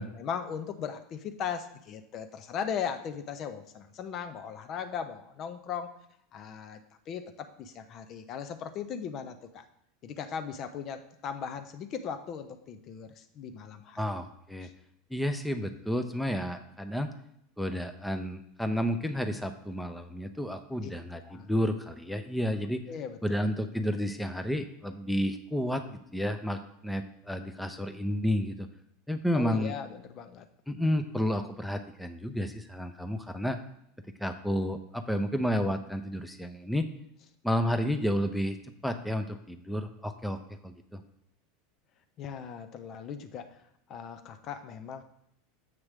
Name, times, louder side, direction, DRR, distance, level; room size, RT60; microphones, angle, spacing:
voice 1, 0.1-5.9 6.3-6.8 7.1-9.6 10.0-14.2 14.6-14.7 21.3-21.5 22.9-23.2 29.3-30.5 42.2-43.6 43.9-45.0, left 7 dB, 40° left, 8 dB, 0.7 m, -38 dB
voice 2, 14.0-14.7 15.1-17.1 17.6-22.8 23.2-28.7 29.1-29.7 30.7-33.6 34.2-36.9 37.4-38.6 38.8-41.0, equal, 5° left, 7 dB, 0.7 m, -31 dB
7.6 x 3.1 x 6.1 m, 0.74 s
figure-of-eight pair, 80°, 0 cm